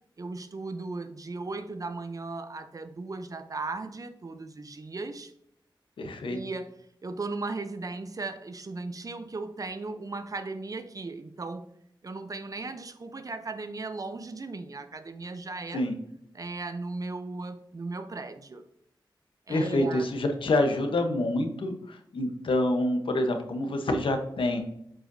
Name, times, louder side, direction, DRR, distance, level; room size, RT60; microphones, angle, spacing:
voice 1, 0.2-5.3 6.2-6.8 7.0-11.7 12.0-15.8 16.3-18.6 19.5-20.1, right 3 dB, 45° right, 0.6 m, -37 dB
voice 2, 6.0-6.4 15.7-15.9 19.5-24.6, left 1 dB, 85° left, 0.9 m, -27 dB
7.5 x 4.9 x 2.7 m
wide cardioid pair, 75°, 9 cm